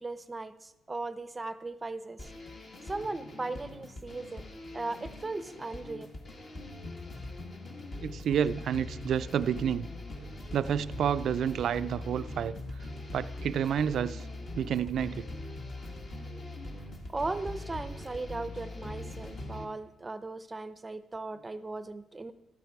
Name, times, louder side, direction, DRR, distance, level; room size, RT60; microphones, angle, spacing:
voice 1, 0.0-2.3 2.8-4.4 4.7-6.1 17.1-22.3, right 3 dB, 20° right, 0.6 m, -37 dB
sound 1, 2.2-19.6, left 2 dB, 40° left, 1.7 m, -42 dB
voice 2, 8.0-9.9 10.5-12.6 13.1-14.3 14.5-15.3, right 8 dB, 65° right, 0.3 m, -29 dB
12.5 x 8.1 x 4.7 m
cardioid pair, 90°, 0 cm